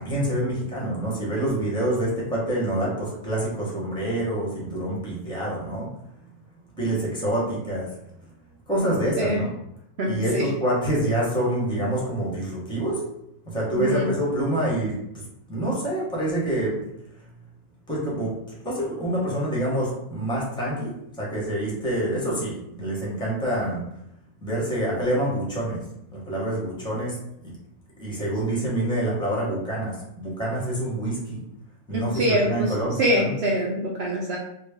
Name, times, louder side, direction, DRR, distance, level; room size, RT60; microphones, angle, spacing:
voice 1, 0.0-5.9 6.8-7.9 8.7-9.5 10.0-13.0 13.5-15.2 15.5-16.8 17.2-17.3 17.9-18.3 18.6-23.8 24.4-25.8 26.1-27.5 28.0-31.4 31.9-33.3, right 1 dB, 5° left, -5 dB, 0.9 m, -26 dB
voice 2, 10.0-10.5 13.7-14.1 31.9-32.7 33.0-34.4, equal, 60° right, -3 dB, 0.7 m, -24 dB
3.2 x 2.4 x 3.5 m, 0.80 s
omnidirectional pair, 1.5 m